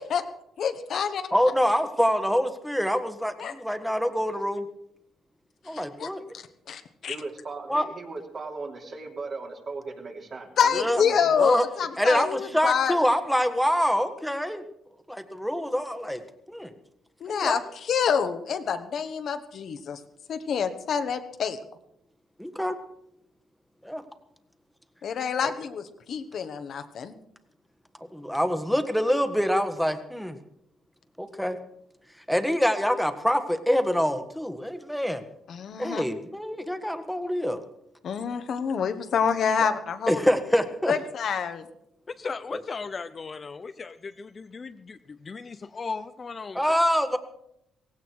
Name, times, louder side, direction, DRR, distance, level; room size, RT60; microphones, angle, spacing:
voice 1, 0.6-1.2 3.4-3.5 5.7-6.1 6.3-7.2 10.6-12.9 17.2-20.0 20.3-21.6 25.0-27.1 35.5-36.0 38.0-40.2 40.9-41.7, left 7 dB, 60° left, 8 dB, 1.3 m, -27 dB
voice 2, 1.3-4.6 5.6-6.2 7.7-7.9 10.7-11.0 11.4-11.6 12.0-14.6 15.1-16.2 16.5-16.7 17.3-17.6 22.4-22.8 23.8-24.0 25.4-25.5 28.1-30.4 31.2-31.6 32.3-35.2 35.8-37.6 39.6-39.7 40.1-40.9 42.5-42.6 46.5-47.2, equal, ahead, 9 dB, 1.5 m, -25 dB
voice 3, 7.1-11.2, right 3 dB, 45° right, 1 dB, 3.1 m, -38 dB
voice 4, 42.1-46.6, left 4 dB, 35° left, 11 dB, 0.7 m, -37 dB
17.0 x 16.0 x 4.7 m, 0.78 s
cardioid pair, 90°, 0 cm